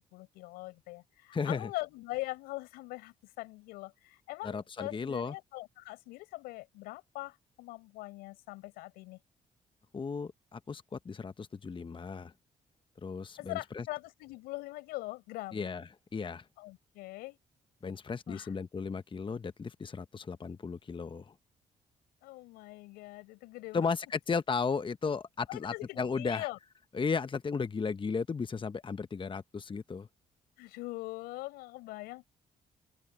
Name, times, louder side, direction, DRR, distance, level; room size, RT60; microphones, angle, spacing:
voice 1, 0.0-9.2 13.4-15.7 16.6-17.4 18.3-18.5 22.2-23.8 25.5-26.6 30.6-32.2, left 20 dB, 85° left, 7.4 m, -42 dB
voice 2, 1.3-1.7 4.4-5.3 9.9-12.3 13.0-13.8 15.5-16.5 17.8-21.3 23.7-26.5 26.9-30.1, left 5 dB, 35° left, 0.9 m, -35 dB
open air
supercardioid pair, 55°, 15 cm